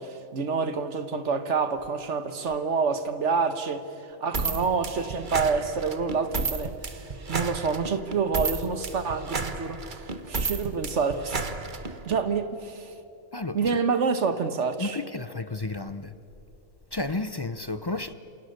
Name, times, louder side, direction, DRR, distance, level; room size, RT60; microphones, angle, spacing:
voice 1, 0.0-3.8 4.2-7.0 7.3-11.5 12.0-12.9 13.5-15.0, right 5 dB, 75° right, 1.7 m, -27 dB
sound 1, 4.3-12.2, right 3 dB, 45° right, 1.4 m, -32 dB
voice 2, 13.3-13.7 14.8-16.1 16.9-18.1, left 2 dB, 30° left, 0.5 m, -32 dB
28.0 x 27.5 x 6.7 m
omnidirectional pair, 1.2 m